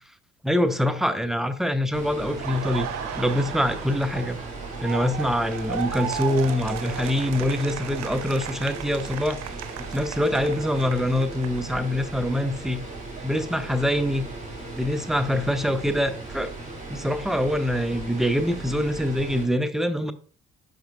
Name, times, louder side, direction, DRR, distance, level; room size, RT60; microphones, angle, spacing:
voice 1, 0.4-2.9 3.2-4.4 4.8-9.4 9.9-12.8 13.2-14.3 14.7-16.5 16.9-20.1, left 1 dB, ahead, 0.7 m, -24 dB
sound 1, 1.9-19.4, right 3 dB, 20° right, 2.9 m, -37 dB
Laughter, 2.2-12.1 12.4-14.4, right 8 dB, 50° right, 0.7 m, -36 dB
11.5 x 5.1 x 2.3 m
figure-of-eight pair, 45°, 35 cm